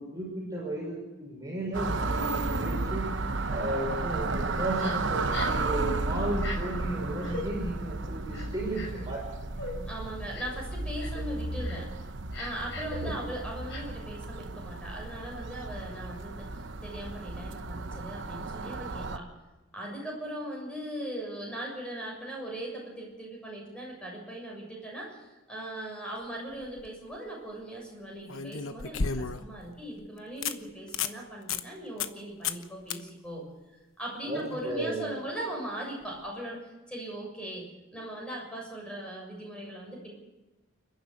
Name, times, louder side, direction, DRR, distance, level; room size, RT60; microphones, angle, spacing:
voice 1, 0.0-3.1 3.5-9.2 9.5-9.7 13.0-13.2 34.2-35.2, right 1 dB, 15° right, -3 dB, 6.1 m, -34 dB
sound 1, 1.7-19.2, right 3 dB, 60° right, 1.0 m, -33 dB
Crying sobbing, 4.8-5.0 5.3-5.6 6.4-6.6 7.2-7.4 8.3-9.0 9.6-9.7 10.3-10.6 11.0-11.2 11.6-11.8 12.3-13.0 13.7-13.8, left 3 dB, 60° left, 6.0 m, -39 dB
voice 2, 9.9-11.9 12.3-19.3 19.7-33.4 34.0-37.6 37.9-40.1, right 1 dB, 5° left, -2 dB, 7.1 m, -39 dB
sound 2, 26.5-26.9 28.3-29.6 30.0-30.1 30.4-30.6 30.9-31.2 31.5-31.6 32.0-32.2 32.4-32.6 32.9-33.0 36.1-36.2, left 5 dB, 80° left, 1.1 m, -32 dB
29.5 x 11.5 x 8.1 m, 1.1 s
head